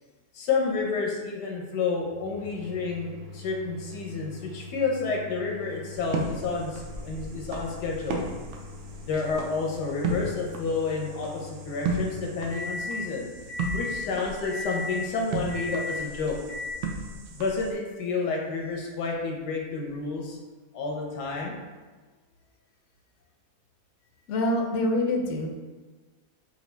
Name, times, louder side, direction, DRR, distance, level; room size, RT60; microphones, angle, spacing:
voice 1, 0.3-8.2 9.0-13.3 13.7-16.4 17.3-20.4 20.7-21.5, left 4 dB, 90° left, -1 dB, 1.4 m, -30 dB
sound 1, 2.3-13.1 13.5-14.1 14.5-15.1 15.5-16.1 16.5-16.7, left 3 dB, 90° right, 1.5 m, -39 dB
sound 2, 5.9-17.7, right 3 dB, 65° right, 0.7 m, -35 dB
voice 2, 24.3-25.5, left 1 dB, 60° left, 1 dB, 0.8 m, -25 dB
5.1 x 2.7 x 3.3 m, 1.3 s
omnidirectional pair, 1.7 m